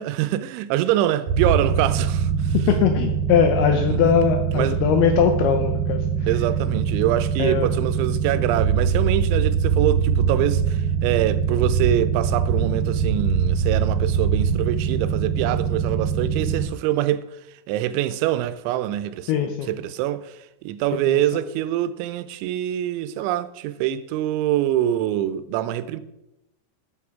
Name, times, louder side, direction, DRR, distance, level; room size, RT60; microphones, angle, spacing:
voice 1, 0.0-2.6 3.9-4.1 4.5-4.8 6.3-17.3 17.7-20.4 20.6-26.0, right 12 dB, 90° right, 2.9 m, -24 dB
sound 1, 1.3-16.6, right 6 dB, 50° right, 4.8 m, -23 dB
voice 2, 2.7-6.0 7.4-7.7 19.3-19.7 21.1-21.2, left 7 dB, 80° left, 2.3 m, -20 dB
8.5 x 7.6 x 4.7 m
omnidirectional pair, 5.3 m